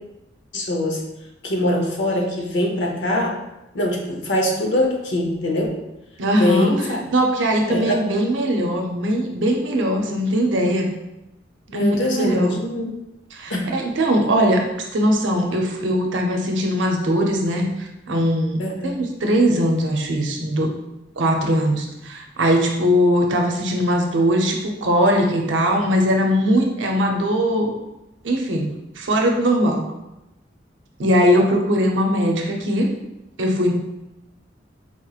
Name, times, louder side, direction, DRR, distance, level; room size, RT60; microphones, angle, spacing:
voice 1, 0.5-1.0 1.4-3.4 3.7-5.7 6.4-7.0 7.7-8.0 11.7-12.9 13.5-13.7 18.6-19.0, left 1 dB, 75° left, 0 dB, 0.8 m, -23 dB
voice 2, 6.2-6.7 7.1-10.9 11.7-12.6 13.3-14.7 14.9-20.7 21.2-27.7 28.2-29.9 31.0-32.9 33.4-33.7, equal, 85° right, 2 dB, 0.6 m, -20 dB
4.4 x 2.9 x 2.4 m, 0.93 s
head